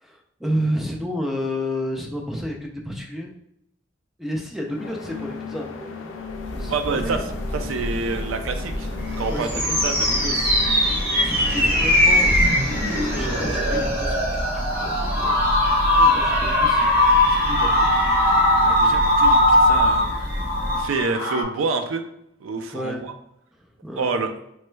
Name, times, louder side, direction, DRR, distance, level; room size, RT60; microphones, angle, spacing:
voice 1, 0.0-3.3 4.2-7.2 9.3-9.9 11.2-12.3 12.8-15.5 15.9-17.9 18.4-18.8 22.7-23.1 23.8-24.2, equal, ahead, 0 dB, 0.3 m, -31 dB
sound 1, 4.6-13.9, left 5 dB, 85° left, 0.4 m, -37 dB
Church bell, 6.2-21.1, equal, 35° left, 0.9 m, -31 dB
voice 2, 6.7-7.2 7.5-8.9 9.2-9.5 9.8-10.5 16.0-16.2 18.6-20.1 20.8-22.0 22.4-23.1 24.0-24.3, right 4 dB, 85° right, 7 dB, 0.4 m, -27 dB
sound 2, 9.1-21.4, left 1 dB, 50° right, 0.9 m, -20 dB
3.1 x 2.2 x 3.1 m, 0.80 s
head